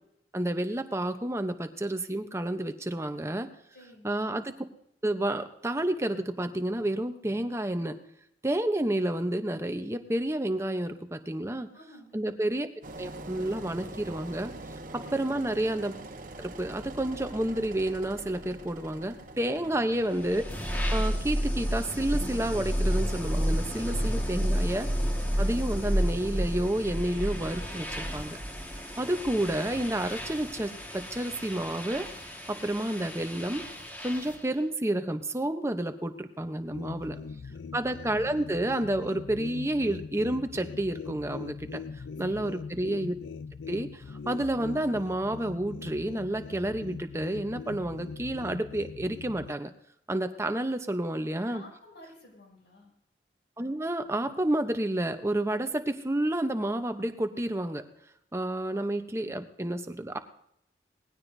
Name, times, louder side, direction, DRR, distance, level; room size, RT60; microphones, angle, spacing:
voice 1, 0.3-3.5 4.0-4.5 5.0-8.0 8.4-11.7 12.1-12.7 13.0-14.5 14.9-15.9 16.4-20.4 20.9-24.9 25.4-28.4 29.0-32.1 32.5-33.6 34.0-37.2 37.7-41.8 42.2-43.1 43.7-49.7 50.1-51.6 53.6-57.9 58.3-60.2, right 1 dB, 15° right, 8 dB, 0.8 m, -30 dB
voice 2, 3.7-4.2 11.7-12.2 15.0-15.4 19.5-19.9 24.0-24.5 37.1-37.6 42.2-42.5 51.5-52.9, left 1 dB, 75° left, -2 dB, 6.3 m, -52 dB
Engine, 12.8-29.7, right 2 dB, 50° right, 1.1 m, -46 dB
sound 1, 19.9-34.5, equal, 10° left, 1.7 m, -31 dB
sound 2, 36.7-49.5, left 5 dB, 90° left, 0.4 m, -42 dB
20.0 x 16.0 x 2.7 m, 0.75 s
head